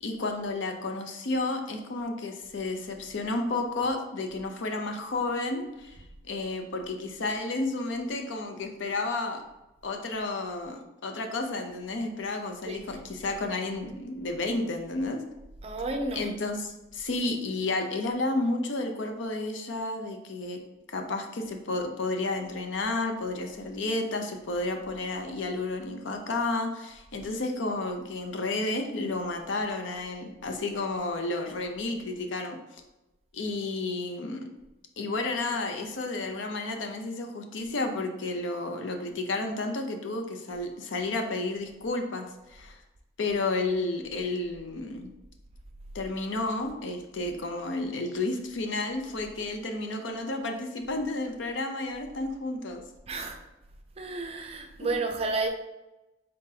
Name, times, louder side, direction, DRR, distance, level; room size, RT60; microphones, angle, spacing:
voice 1, 0.0-6.0 6.2-9.4 9.8-15.2 16.1-20.6 20.9-32.6 33.3-34.5 35.0-42.8 43.2-45.1 45.9-52.8 54.8-54.9, left 2 dB, 80° left, 0.6 m, -31 dB
voice 2, 12.7-13.0 15.6-16.3 53.1-53.4 54.0-55.5, right 3 dB, 30° right, 0.4 m, -31 dB
3.9 x 3.8 x 2.7 m
head